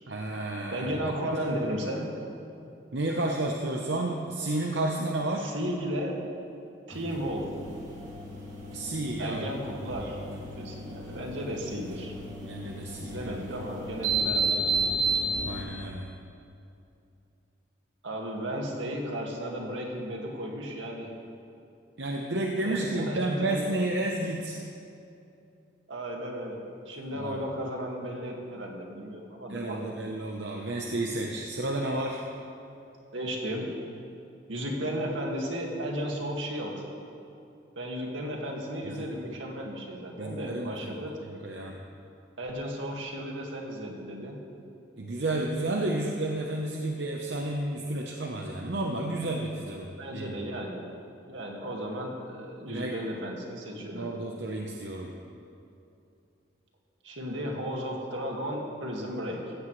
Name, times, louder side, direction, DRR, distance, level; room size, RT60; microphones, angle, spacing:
voice 1, 0.1-1.4 2.9-5.5 8.7-9.5 9.8-10.1 12.4-13.4 15.4-16.1 22.0-24.6 27.1-27.4 29.5-32.2 38.8-39.1 40.2-41.0 41.3-41.8 45.0-50.3 52.7-53.0 53.8-55.1, right 2 dB, 70° right, 0 dB, 0.9 m, -31 dB
voice 2, 0.7-2.1 5.4-6.2 6.9-7.4 9.2-12.1 13.0-14.6 18.0-21.1 22.6-23.7 25.9-29.9 33.1-33.7 34.5-36.8 37.8-41.1 42.4-44.4 49.8-50.8 51.3-54.1 57.0-59.4, equal, 85° right, 0 dB, 2.0 m, -34 dB
sound 1, 6.9-15.6, right 2 dB, 40° right, 2.5 m, -33 dB
15.5 x 15.0 x 3.2 m, 2.7 s
head